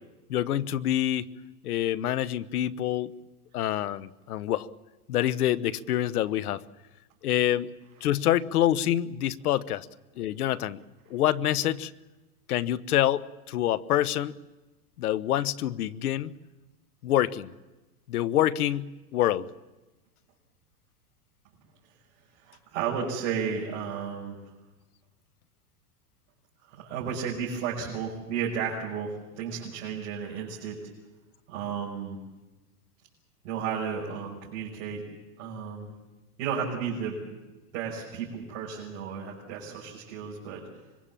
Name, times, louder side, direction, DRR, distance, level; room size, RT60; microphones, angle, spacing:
voice 1, 0.3-1.3 1.6-3.1 3.5-4.7 5.1-6.6 7.2-7.7 8.0-9.9 10.2-10.8 11.1-11.9 12.5-14.4 15.0-16.3 17.0-17.5 18.1-19.5, left 12 dB, 80° left, 16 dB, 1.1 m, -26 dB
voice 2, 22.4-24.4 26.7-30.8 31.5-32.2 33.4-35.0 35.4-35.9 36.4-37.2 37.7-40.7, right 7 dB, 40° right, -3 dB, 5.7 m, -33 dB
25.5 x 22.5 x 7.4 m, 1.1 s
supercardioid pair, 160°, 44 cm